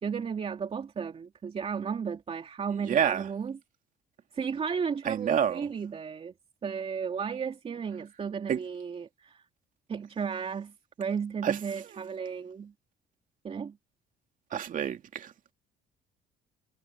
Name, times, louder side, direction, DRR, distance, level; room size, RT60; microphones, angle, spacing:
voice 1, 0.0-3.6 4.3-6.3 6.6-9.4 9.9-12.7 13.4-13.8, right 6 dB, 35° right, 3.0 m, -34 dB
voice 2, 2.9-3.3 5.0-5.7 8.5-8.6 11.4-11.6 11.9-12.0 14.5-15.5, right 8 dB, 50° right, 2.3 m, -28 dB
cardioid pair, 110°, 17 cm